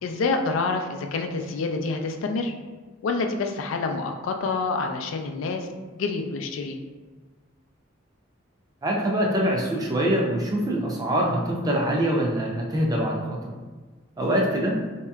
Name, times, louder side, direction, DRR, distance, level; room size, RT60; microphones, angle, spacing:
voice 1, 0.0-2.5 3.0-6.8, left 3 dB, 90° left, 4 dB, 0.3 m, -27 dB
voice 2, 8.8-13.5 14.2-14.8, right 1 dB, 20° right, -2 dB, 0.5 m, -24 dB
3.2 x 2.8 x 2.3 m, 1.3 s
head